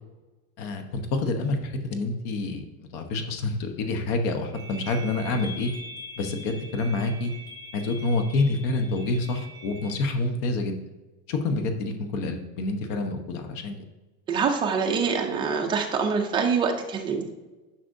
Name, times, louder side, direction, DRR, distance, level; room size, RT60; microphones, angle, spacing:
voice 1, 0.6-5.7 6.2-7.3 7.7-10.8 11.3-13.8, left 2 dB, 65° left, 6 dB, 1.1 m, -27 dB
sound 1, 4.5-10.1, equal, 10° left, 1.3 m, -43 dB
voice 2, 14.3-17.2, right 5 dB, 15° right, 2 dB, 0.3 m, -25 dB
10.0 x 5.9 x 2.6 m, 1.1 s
cardioid pair, 170°, 40 cm